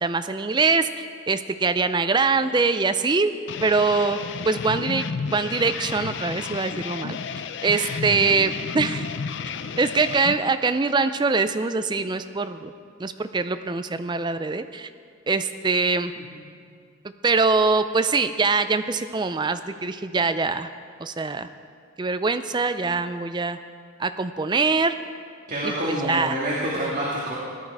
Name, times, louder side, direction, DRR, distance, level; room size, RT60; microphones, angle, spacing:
voice 1, 0.0-3.3 3.6-4.2 4.5-5.1 5.3-7.2 7.6-9.1 9.8-12.7 13.0-14.9 15.3-16.1 17.2-20.7 21.0-21.5 22.0-23.6 24.0-24.9 25.6-26.3, right 4 dB, 20° right, 10 dB, 0.4 m, -23 dB
sound 1, 3.5-10.4, left 5 dB, 60° left, 0.5 m, -32 dB
voice 2, 25.5-27.3, right 1 dB, 40° right, -5 dB, 1.8 m, -28 dB
16.5 x 11.0 x 4.7 m, 2.2 s
head